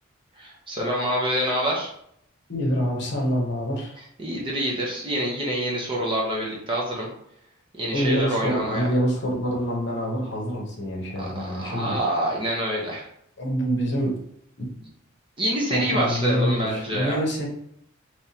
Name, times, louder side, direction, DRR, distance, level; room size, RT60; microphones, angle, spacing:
voice 1, 0.3-1.9 4.2-7.1 7.7-8.9 11.2-13.1 15.4-17.2, equal, 25° right, -3 dB, 0.9 m, -26 dB
voice 2, 2.5-4.0 7.9-12.0 13.4-14.2 14.6-14.7 15.7-17.5, equal, 55° left, -1 dB, 1.0 m, -26 dB
3.5 x 3.1 x 2.8 m, 0.69 s
head